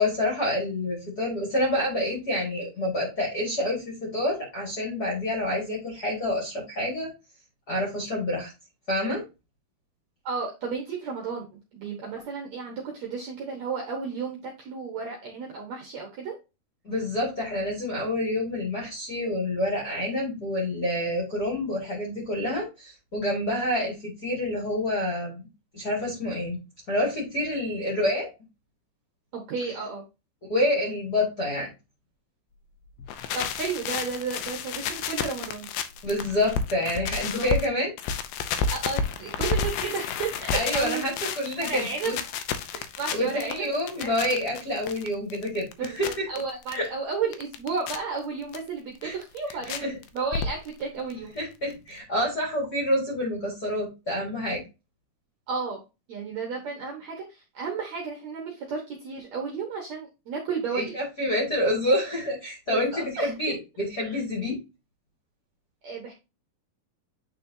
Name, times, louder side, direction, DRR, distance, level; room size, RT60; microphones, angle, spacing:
voice 1, 0.0-7.1 7.7-8.5 8.9-9.2 16.8-25.4 25.7-26.6 26.9-28.3 30.5-31.7 36.0-37.9 40.5-42.1 42.8-46.3 46.7-46.9 49.0-49.2 49.7-49.9 51.4-54.6 60.7-64.6, left 1 dB, 35° left, -2 dB, 1.9 m, -28 dB
voice 2, 10.3-11.4 11.7-16.4 29.3-30.0 33.3-35.7 37.3-37.5 38.7-41.4 41.7-42.1 43.0-43.7 44.0-44.1 45.8-51.3 55.5-60.9 62.7-63.6 64.0-64.2 65.8-66.1, right 5 dB, 65° right, 0 dB, 1.8 m, -33 dB
sound 1, 33.0-37.7 38.0-46.8 47.1-48.0 48.5-48.6 49.0-49.8 50.0-50.8 51.1-51.2 51.4-51.5 51.7-51.8, left 5 dB, 80° left, 2.2 m, -31 dB
8.7 x 4.3 x 2.7 m, 0.26 s
omnidirectional pair, 4.6 m